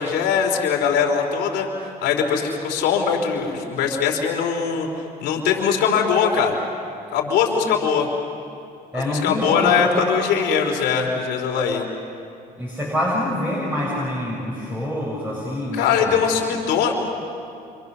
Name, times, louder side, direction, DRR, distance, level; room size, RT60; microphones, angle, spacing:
voice 1, 0.0-4.9 5.2-6.6 7.1-8.1 8.9-11.8 15.7-16.9, left 7 dB, 85° left, 1 dB, 3.4 m, -21 dB
voice 2, 8.9-10.1 12.6-16.2, left 1 dB, 10° right, -5 dB, 7.3 m, -26 dB
28.5 x 26.5 x 6.8 m, 2.5 s
cardioid pair, 110°, 17 cm